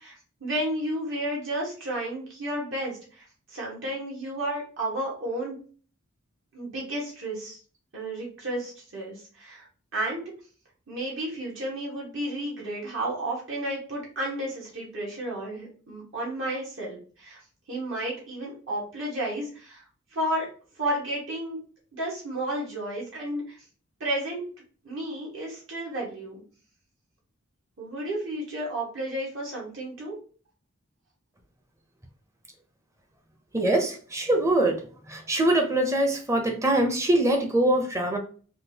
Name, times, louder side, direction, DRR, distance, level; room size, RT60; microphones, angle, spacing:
voice 1, 0.0-5.6 6.5-7.6 7.9-9.7 9.9-10.2 10.9-17.4 17.7-19.8 20.1-20.5 20.7-21.6 21.9-23.6 24.0-24.4 24.8-26.4 27.8-30.1, right 1 dB, 65° right, -4 dB, 1.2 m, -32 dB
voice 2, 33.5-34.8 35.1-38.2, right 1 dB, 15° right, 4 dB, 0.5 m, -23 dB
3.7 x 2.3 x 2.7 m, 0.41 s
head